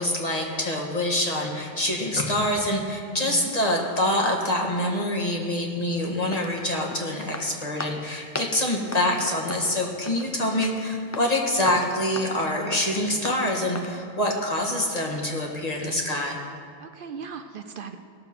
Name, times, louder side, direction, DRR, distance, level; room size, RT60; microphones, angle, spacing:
voice 1, 0.0-16.4, left 1 dB, 40° left, 0 dB, 1.7 m, -25 dB
voice 2, 3.1-3.5 16.8-18.0, right 6 dB, 60° right, 7 dB, 0.8 m, -38 dB
sound 1, 5.9-14.0, left 2 dB, 20° left, 0.5 m, -38 dB
17.5 x 7.0 x 6.0 m, 2.2 s
omnidirectional pair, 1.0 m